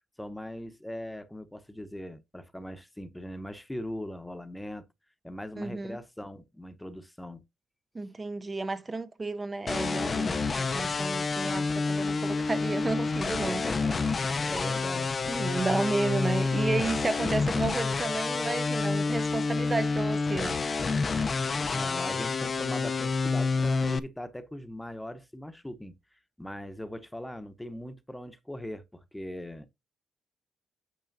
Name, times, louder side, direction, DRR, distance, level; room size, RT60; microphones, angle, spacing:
voice 1, 0.2-4.9 5.2-7.4 13.5-15.1 21.7-25.9 26.4-29.7, left 1 dB, 5° left, 0.9 m, -40 dB
voice 2, 5.6-6.0 7.9-13.6 15.3-20.6, right 3 dB, 25° right, 0.6 m, -32 dB
sound 1, 9.7-24.0, left 4 dB, 35° left, 0.6 m, -28 dB
9.2 x 6.3 x 2.6 m
cardioid pair, 90°, 0 cm